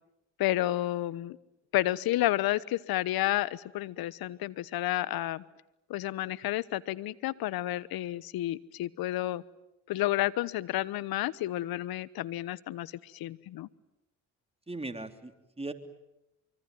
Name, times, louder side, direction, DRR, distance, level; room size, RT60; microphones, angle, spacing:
voice 1, 0.4-1.4 1.7-5.4 5.9-9.4 9.9-13.7, left 15 dB, 75° left, 19 dB, 1.1 m, -31 dB
voice 2, 14.7-15.7, right 2 dB, 15° right, 7 dB, 3.3 m, -38 dB
25.0 x 24.5 x 9.4 m, 0.90 s
supercardioid pair, 60°, 37 cm